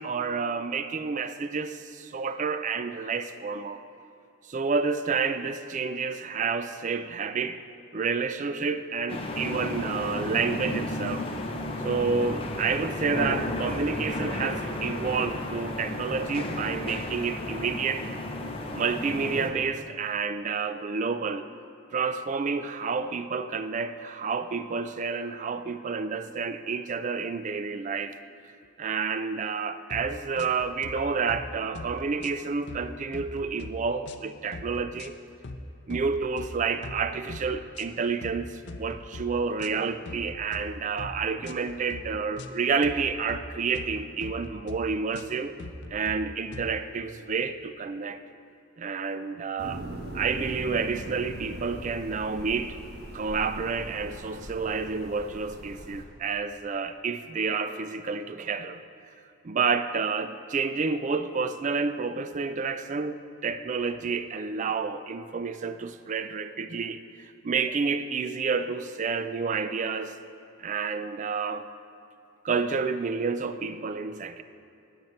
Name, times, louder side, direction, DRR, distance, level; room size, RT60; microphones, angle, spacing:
voice 1, 0.0-3.8 4.5-7.6 7.9-11.3 11.8-18.0 18.7-21.5 21.9-28.2 28.8-35.1 35.9-45.5 45.9-48.2 48.8-49.8 50.1-52.8 53.1-58.8 59.4-70.2 70.6-71.7 72.4-74.4, right 5 dB, 35° right, 11 dB, 0.4 m, -29 dB
sound 1, 9.1-19.5, left 1 dB, 25° left, 0.8 m, -33 dB
sound 2, 29.9-30.1 30.4-30.9 31.3-31.5 31.7-32.9 33.1-33.7 34.1-34.2 34.5-35.1 35.4-35.6 35.9-36.5 36.8-37.0 37.3-37.8 38.2-38.4 38.7-39.2 39.6-40.6 41.0-41.2 41.4-42.0 42.4-42.6 42.8-43.4 43.7-43.9 44.2-44.8 45.1-45.3 45.6-46.2 46.5-46.7, left 3 dB, 55° left, 0.5 m, -41 dB
sound 3, 49.6-56.0, equal, 50° right, 1.2 m, -40 dB
9.7 x 9.4 x 4.4 m, 2.8 s
head